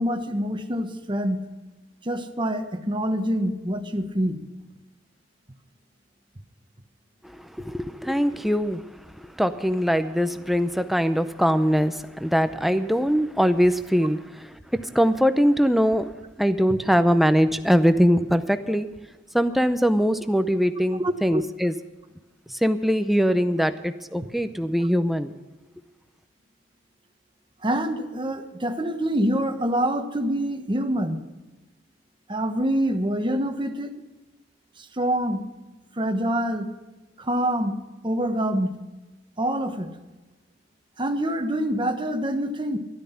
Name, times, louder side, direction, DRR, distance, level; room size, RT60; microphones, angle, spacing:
voice 1, 0.0-1.4 2.0-4.4 21.0-21.4 27.6-31.2 32.3-33.9 34.8-35.4 36.0-36.7 37.2-37.8 38.0-38.7 39.4-39.9 41.0-42.8, right 1 dB, 25° right, 6 dB, 1.1 m, -26 dB
voice 2, 7.2-8.8 9.2-16.1 16.4-18.9 19.3-21.7 22.5-25.3, equal, ahead, 10 dB, 0.6 m, -22 dB
13.0 x 12.5 x 5.7 m, 1.1 s
head